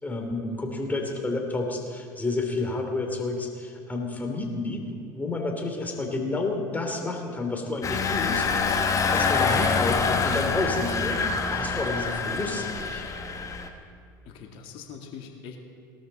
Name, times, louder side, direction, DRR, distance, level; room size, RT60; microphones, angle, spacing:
voice 1, 0.0-8.5 9.1-11.2 11.5-13.0, left 2 dB, 15° left, 2 dB, 3.0 m, -30 dB
Engine, 7.8-13.7, left 5 dB, 30° left, 1.5 m, -26 dB
voice 2, 9.2-9.6 14.3-15.6, left 7 dB, 55° left, 2 dB, 2.0 m, -42 dB
18.5 x 12.5 x 4.2 m, 2.2 s
hypercardioid pair, 80°, 11 cm